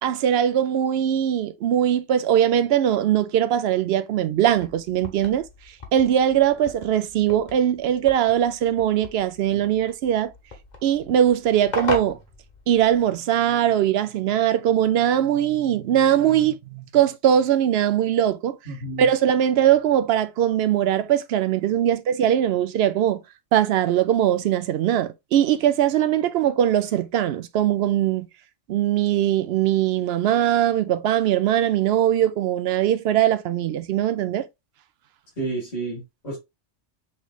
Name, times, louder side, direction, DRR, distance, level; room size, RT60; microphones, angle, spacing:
voice 1, 0.0-5.4 5.9-10.3 10.8-12.2 12.7-18.6 19.0-23.2 23.5-28.3 28.7-34.5, right 10 dB, 65° right, 0.7 m, -21 dB
sound 1, 4.4-13.1, left 2 dB, 40° left, 1.2 m, -37 dB
voice 2, 18.7-19.0 35.4-36.4, right 3 dB, 60° left, 2.1 m, -30 dB
5.6 x 3.1 x 2.3 m
omnidirectional pair, 1.3 m